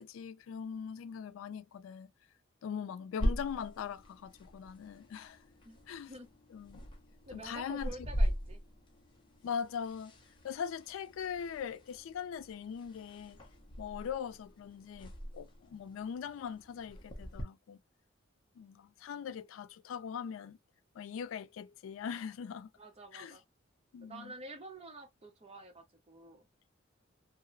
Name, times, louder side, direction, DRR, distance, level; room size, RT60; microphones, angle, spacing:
voice 1, 0.0-2.1 2.6-5.4 5.9-6.1 6.5-6.8 7.3-7.9 9.4-10.1 10.4-13.4 13.8-17.8 18.6-20.6 20.9-22.7 23.1-23.4 23.9-24.3, left 7 dB, 80° left, 0.3 m, -41 dB
sound 1, 3.2-17.4, equal, 25° left, 0.6 m, -40 dB
voice 2, 7.3-8.6 22.8-23.4 24.0-26.5, right 2 dB, 30° right, 0.7 m, -49 dB
2.7 x 2.0 x 2.5 m
head